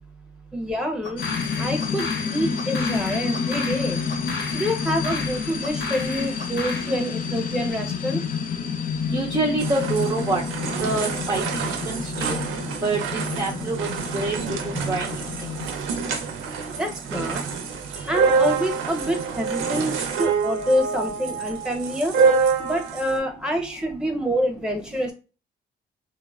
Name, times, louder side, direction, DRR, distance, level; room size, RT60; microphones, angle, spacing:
voice 1, 0.5-1.2 1.6-4.0 4.5-8.2 16.7-17.4 18.0-25.1, equal, 5° right, 3 dB, 0.8 m, -27 dB
sound 1, 1.0-7.0, left 3 dB, 65° left, 0.8 m, -34 dB
sound 2, 1.2-15.6, left 5 dB, 45° left, 0.5 m, -29 dB
voice 2, 9.1-10.4 10.8-11.4 11.9-12.4 12.8-14.4 14.6-15.1, right 3 dB, 20° right, 0 dB, 0.4 m, -26 dB
sound 3, 9.6-23.2, right 5 dB, 85° right, 0.5 m, -26 dB
3.0 x 2.1 x 2.3 m, 0.32 s
cardioid pair, 90°, 20 cm